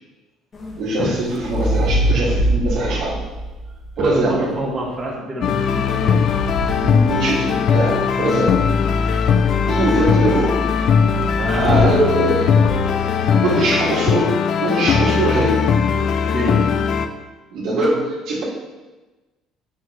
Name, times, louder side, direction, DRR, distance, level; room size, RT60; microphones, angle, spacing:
sound 1, 0.5-4.6 5.6-7.9 11.2-12.1 12.5-13.0, right 1 dB, 25° left, 1.1 m, -25 dB
voice 1, 0.8-3.2 4.0-4.5 6.8-8.6 9.7-10.6 11.6-12.6 13.4-15.7 17.5-18.4, right 2 dB, 70° right, -5 dB, 2.3 m, -21 dB
voice 2, 4.0-6.3 8.2-8.4 11.4-12.0 12.2-12.4 13.1-13.7 16.2-16.8, equal, 20° right, -5 dB, 1.5 m, -26 dB
sound 2, 5.4-17.1, left 6 dB, 50° left, 0.5 m, -19 dB
8.7 x 6.6 x 3.2 m, 1.2 s
cardioid pair, 140°, 0 cm